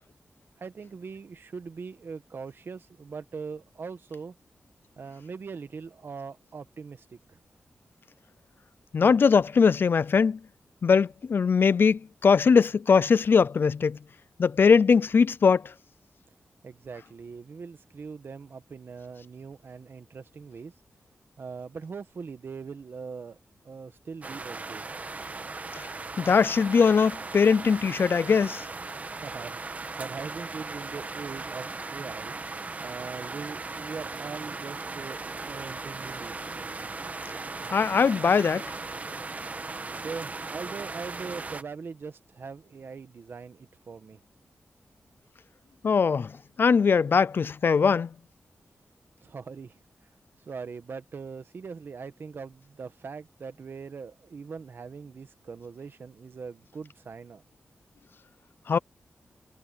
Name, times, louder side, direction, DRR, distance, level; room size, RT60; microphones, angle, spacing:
voice 1, 0.6-4.3 5.0-7.4 16.6-20.7 21.4-23.4 23.6-24.9 29.2-32.4 32.8-36.3 40.0-44.2 49.2-49.8 50.4-57.4, right 5 dB, 60° right, 1.5 m, -41 dB
voice 2, 8.9-10.4 10.8-14.0 14.4-15.7 26.2-28.7 37.7-38.7 45.8-46.3 46.6-48.1 58.7-58.8, left 5 dB, 60° left, 0.5 m, -21 dB
sound 1, 24.2-41.6, right 3 dB, 35° right, 1.2 m, -38 dB
wide cardioid pair, 110°, 4 cm